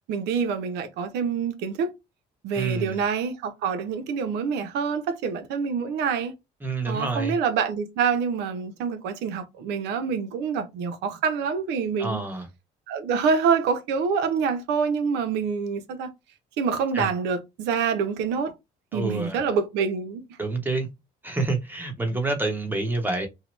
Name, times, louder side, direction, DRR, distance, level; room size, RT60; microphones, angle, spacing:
voice 1, 0.1-1.9 2.4-6.3 6.9-12.2 12.9-16.1 16.6-18.5 18.9-20.2, right 6 dB, 85° right, 0.6 m, -26 dB
voice 2, 2.5-3.0 6.6-7.3 12.0-12.5 16.9-17.1 18.9-19.4 20.4-20.9 21.2-23.3, right 3 dB, 10° right, 1.0 m, -28 dB
2.8 x 2.1 x 3.0 m
cardioid pair, 110°, 17 cm